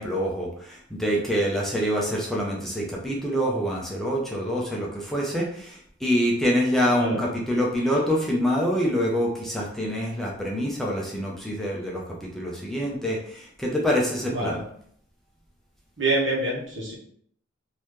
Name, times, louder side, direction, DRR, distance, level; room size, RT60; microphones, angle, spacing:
voice 1, 0.0-14.6, equal, ahead, -3 dB, 0.6 m, -26 dB
voice 2, 6.8-7.2 14.2-14.6 16.0-16.9, right 2 dB, 65° right, -3 dB, 1.1 m, -26 dB
3.8 x 2.7 x 3.1 m, 0.64 s
head